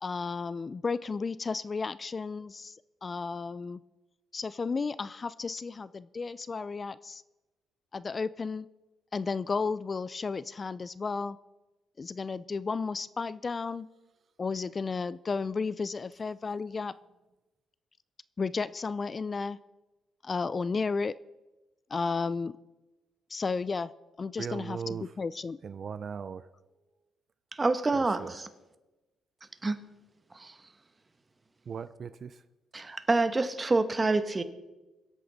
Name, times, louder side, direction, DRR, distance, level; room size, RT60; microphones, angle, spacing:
voice 1, 0.0-2.8 3.0-3.8 4.3-7.2 7.9-8.7 9.1-11.4 12.0-13.9 14.4-16.9 18.4-19.6 20.2-21.1 21.9-22.5 23.3-23.9 24.2-25.6, left 4 dB, 35° left, 17 dB, 0.3 m, -33 dB
voice 2, 24.4-25.0 25.6-26.4 27.9-28.3 31.7-32.3, right 6 dB, 50° right, 14 dB, 0.4 m, -38 dB
voice 3, 27.6-28.5 29.6-29.8 30.3-30.5 32.7-34.4, right 3 dB, 25° right, 10 dB, 1.1 m, -27 dB
24.5 x 8.4 x 4.0 m, 1.1 s
cardioid pair, 90°, 0 cm